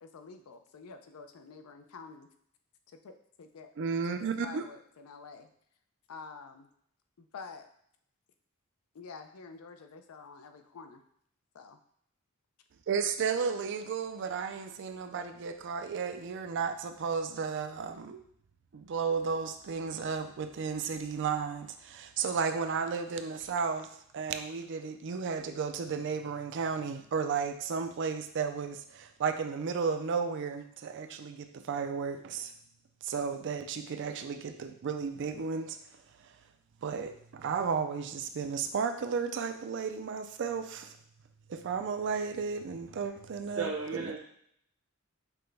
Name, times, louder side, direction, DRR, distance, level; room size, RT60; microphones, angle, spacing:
voice 1, 0.0-2.3 2.9-3.7 4.1-5.5 6.1-6.7 7.2-7.7 8.9-11.0 11.5-11.8, left 4 dB, 85° left, 7 dB, 0.5 m, -48 dB
voice 2, 3.8-4.7 12.9-18.3 18.7-32.5 33.0-35.8 36.2-36.3 36.8-41.0 41.5-44.1, right 5 dB, 55° right, 8 dB, 0.4 m, -33 dB
voice 3, 43.6-44.2, right 4 dB, 75° right, -1 dB, 1.0 m, -34 dB
5.9 x 2.2 x 3.3 m, 0.69 s
head